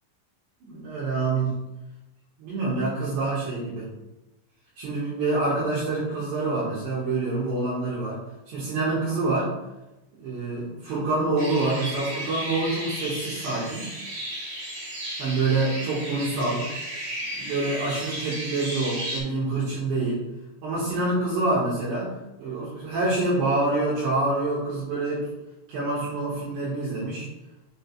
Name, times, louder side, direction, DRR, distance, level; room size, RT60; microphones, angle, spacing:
voice 1, 0.6-1.5 2.4-3.9 4.8-8.2 8.5-9.6 10.2-13.9 15.2-16.7 17.4-20.3 20.6-22.1 22.4-25.2 25.7-27.3, right 2 dB, 65° right, -8 dB, 3.5 m, -26 dB
sound 1, 11.4-19.2, right 1 dB, 40° right, 3.0 m, -34 dB
10.5 x 5.3 x 2.4 m, 0.99 s
omnidirectional pair, 5.8 m